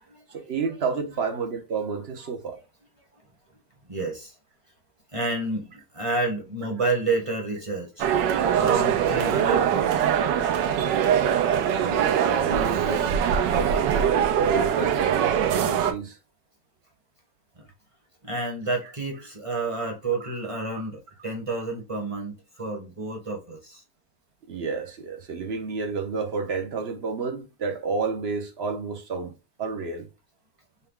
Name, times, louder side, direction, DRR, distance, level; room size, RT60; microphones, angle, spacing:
voice 1, 0.3-2.6 11.5-13.1 13.5-16.2 20.2-20.3 24.5-29.3 29.6-30.1, right 4 dB, 60° right, 0.7 m, -30 dB
voice 2, 3.9-4.3 5.1-8.1 8.6-10.1 12.7-12.9 17.6-17.7 18.2-23.8, right 3 dB, 25° right, 0.8 m, -30 dB
sound 1, 8.0-15.9, right 9 dB, 75° right, 1.3 m, -22 dB
5.5 x 2.2 x 3.6 m
omnidirectional pair, 1.9 m